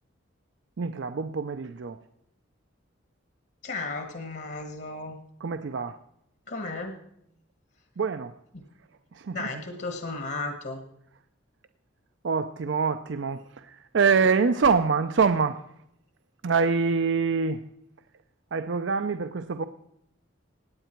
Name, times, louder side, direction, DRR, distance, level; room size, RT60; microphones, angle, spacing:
voice 1, 0.8-2.0 5.4-6.0 8.0-8.3 9.1-9.5 12.2-15.6 16.4-17.6 18.5-19.6, right 5 dB, 70° right, 0.5 m, -25 dB
voice 2, 3.6-5.2 6.5-6.9 9.3-10.8, left 3 dB, 55° left, 1.4 m, -34 dB
17.5 x 9.0 x 4.5 m
head